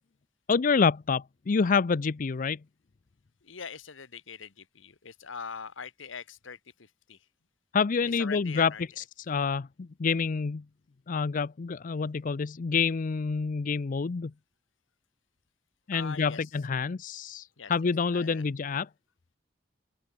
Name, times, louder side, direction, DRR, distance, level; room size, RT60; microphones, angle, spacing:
voice 1, 0.5-2.6 7.7-10.6 11.1-14.3 15.9-18.9, left 5 dB, 45° left, 0.5 m, -27 dB
voice 2, 3.4-7.2 8.1-8.8 15.9-16.5 17.6-17.7 18.1-18.5, left 6 dB, 85° left, 1.3 m, -42 dB
open air
head